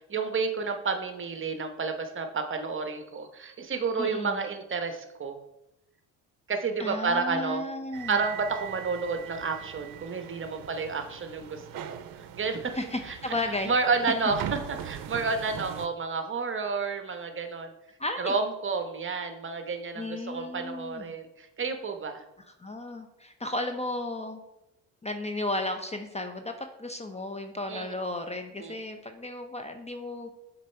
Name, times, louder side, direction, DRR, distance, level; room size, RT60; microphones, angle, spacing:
voice 1, 0.1-5.4 6.5-7.6 8.1-11.6 11.9-12.0 12.3-12.7 13.1-13.3 13.6-14.4 14.7-17.7 18.2-22.2 27.7-27.9 28.6-28.8, right 4 dB, 30° right, 6 dB, 1.0 m, -30 dB
voice 2, 4.0-4.4 6.8-8.2 12.7-13.7 18.0-18.3 20.0-21.1 22.6-24.4 25.0-30.3, left 2 dB, 15° left, 6 dB, 0.6 m, -34 dB
sound 1, 7.9-15.9, right 9 dB, 60° right, 0.7 m, -41 dB
7.4 x 4.0 x 4.4 m, 0.90 s
supercardioid pair, 70°, 38 cm